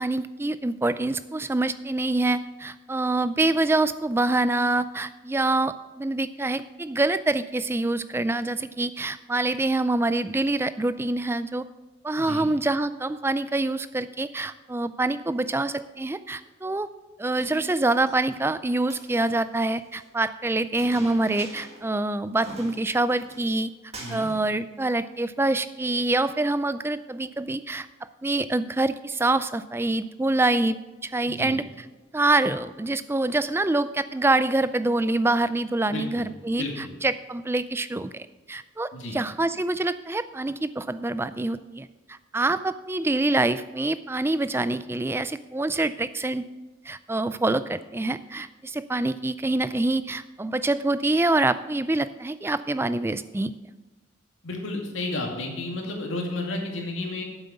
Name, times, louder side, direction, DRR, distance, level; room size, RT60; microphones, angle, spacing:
voice 1, 0.0-11.7 12.0-16.9 17.2-23.7 24.1-27.9 28.2-31.6 32.1-36.6 37.0-41.9 42.3-46.4 46.9-53.5, right 2 dB, 10° right, 13 dB, 0.3 m, -25 dB
voice 2, 12.2-12.5 24.0-24.3 31.3-31.6 35.9-36.2 36.5-36.9 38.9-39.2 54.4-57.2, left 2 dB, 85° left, 0 dB, 2.4 m, -32 dB
Chink clink, 17.4-18.2 18.8-20.1 20.8-21.9 22.1-22.2 22.4-23.6 23.9-24.4, right 2 dB, 30° right, 1.8 m, -44 dB
9.0 x 7.6 x 6.9 m, 1.2 s
head